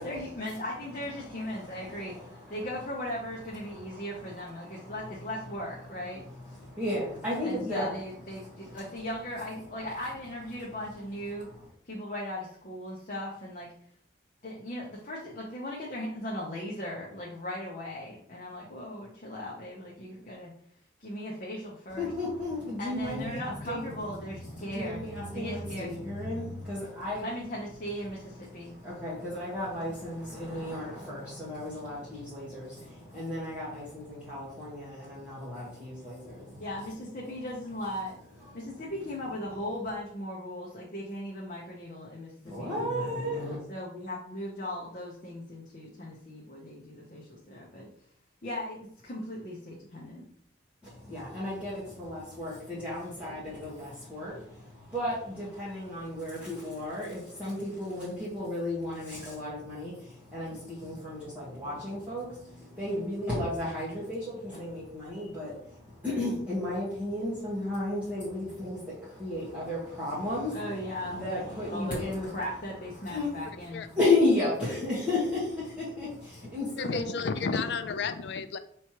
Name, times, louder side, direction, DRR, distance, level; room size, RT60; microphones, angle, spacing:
voice 1, 0.0-2.1 2.5-6.2 7.4-11.5 11.8-13.7 14.4-20.5 21.0-22.1 22.8-25.0 25.3-25.9 27.2-28.7 36.6-38.1 38.5-43.1 43.7-47.9 48.4-50.2 70.5-71.4 71.7-72.0 72.3-73.8, left 1 dB, 40° left, 0.8 m, -38 dB
voice 2, 1.3-2.6 3.6-5.1 6.5-7.9 8.3-8.8 21.9-23.9 24.3-27.2 28.5-36.7 42.4-43.6 50.8-72.4 73.1-73.3 73.9-77.1, left 2 dB, 10° right, 1.4 m, -34 dB
voice 3, 76.8-78.6, left 5 dB, 60° left, 0.4 m, -31 dB
5.6 x 3.1 x 3.0 m
head